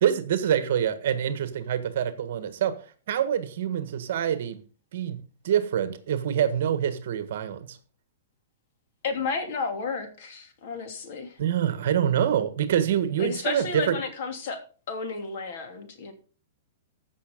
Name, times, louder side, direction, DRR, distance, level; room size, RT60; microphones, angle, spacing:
voice 1, 0.0-2.8 3.1-4.6 4.9-7.8 11.4-14.0, right 9 dB, 55° right, 1.6 m, -26 dB
voice 2, 9.0-11.4 13.2-14.6 14.9-16.1, left 5 dB, 45° left, 2.9 m, -32 dB
15.0 x 6.6 x 5.2 m
hypercardioid pair, 170°, 0 cm